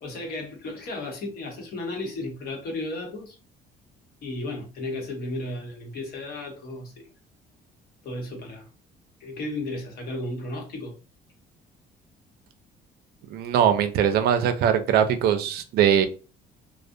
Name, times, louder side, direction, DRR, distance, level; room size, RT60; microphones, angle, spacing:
voice 1, 0.0-3.4 4.2-7.1 8.0-8.7 9.2-10.9, left 2 dB, 65° left, 1 dB, 0.9 m, -34 dB
voice 2, 13.3-16.1, right 9 dB, 70° right, 8 dB, 0.4 m, -21 dB
2.4 x 2.1 x 2.6 m, 0.34 s
cardioid pair, 110°, 17 cm